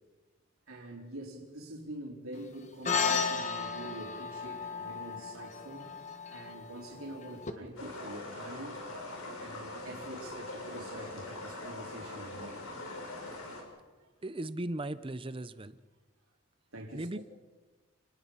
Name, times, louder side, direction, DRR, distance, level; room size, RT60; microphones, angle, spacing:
voice 1, 0.7-5.9 6.3-8.8 9.4-12.5 16.7-17.2, right 1 dB, 80° right, -1 dB, 4.4 m, -45 dB
sound 1, 2.8-7.5, left 5 dB, 35° left, 1.5 m, -34 dB
sound 2, 7.8-13.6, left 2 dB, 85° left, 6.7 m, -42 dB
voice 2, 14.2-15.8 16.9-17.2, right 1 dB, 25° right, 14 dB, 0.8 m, -37 dB
30.0 x 20.0 x 5.7 m, 1.3 s
head